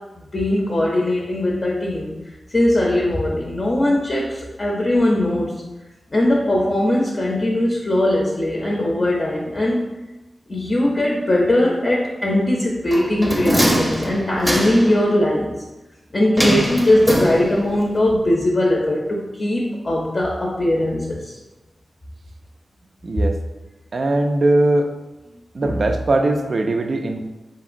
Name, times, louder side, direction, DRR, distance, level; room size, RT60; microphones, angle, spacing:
voice 1, 0.2-2.1 2.5-5.6 6.1-9.9 10.5-15.5 16.1-21.3, left 1 dB, 45° left, -3 dB, 0.5 m, -20 dB
sound 1, 12.9-15.0 16.4-17.8 18.1-18.2, equal, 15° right, 0.6 m, -22 dB
voice 2, 23.0-23.4 23.9-24.9 25.5-27.2, right 2 dB, 55° right, 4 dB, 0.3 m, -20 dB
2.9 x 2.8 x 2.5 m, 1.0 s
cardioid pair, 55°, 0 cm